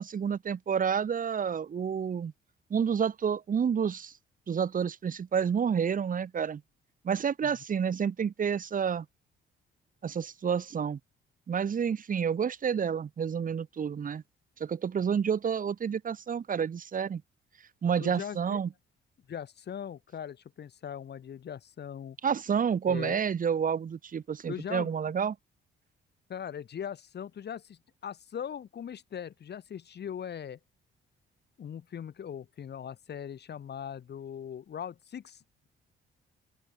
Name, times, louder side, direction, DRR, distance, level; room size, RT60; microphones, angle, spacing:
voice 1, 0.0-2.3 2.7-4.1 4.5-6.6 7.0-9.0 10.0-11.0 11.5-14.2 14.6-17.2 17.8-18.7 22.2-25.3, right 7 dB, 45° right, 1.6 m, -29 dB
voice 2, 18.0-18.6 19.3-22.2 22.9-23.2 24.5-24.9 26.3-30.6 31.6-35.4, left 8 dB, 55° left, 5.7 m, -40 dB
open air
cardioid pair, 90°, 20 cm